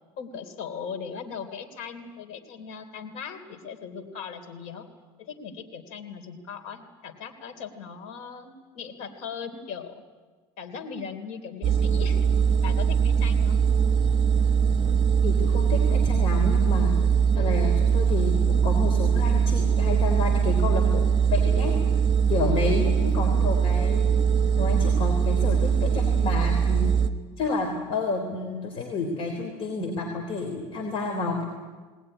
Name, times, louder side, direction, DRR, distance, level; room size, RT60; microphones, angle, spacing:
voice 1, 0.2-4.9 5.2-9.9 10.6-12.3 12.6-13.6 23.0-23.4, left 6 dB, 75° left, 5 dB, 3.3 m, -39 dB
sound 1, 11.6-27.1, right 7 dB, 40° right, 1.3 m, -22 dB
voice 2, 15.2-16.9 17.3-21.0 21.3-21.7 22.3-24.1 24.6-27.0 27.4-31.4, left 3 dB, 50° left, 2 dB, 3.7 m, -30 dB
20.0 x 19.5 x 9.9 m, 1.4 s
cardioid pair, 125°, 12 cm